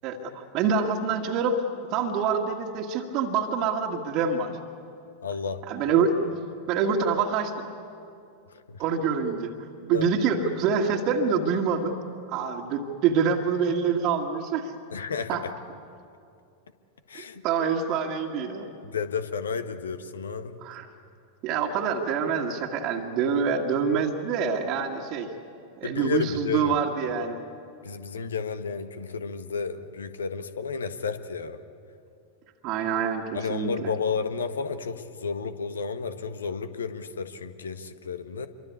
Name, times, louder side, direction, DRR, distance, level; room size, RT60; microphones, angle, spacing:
voice 1, 0.0-1.6 1.9-4.6 5.7-6.3 6.7-7.7 8.8-9.5 9.8-11.9 12.3-14.7 15.3-15.4 17.4-18.7 20.6-20.9 21.4-25.3 25.8-27.4 32.6-33.9, right 6 dB, 40° right, 1 dB, 1.9 m, -26 dB
voice 2, 5.2-5.6 8.7-8.8 9.9-10.1 14.9-15.4 17.1-17.4 18.8-20.6 25.8-26.8 27.8-31.6 33.3-38.5, left 5 dB, 70° left, 10 dB, 1.4 m, -32 dB
27.0 x 23.5 x 8.5 m, 2.5 s
figure-of-eight pair, 90°, 0 cm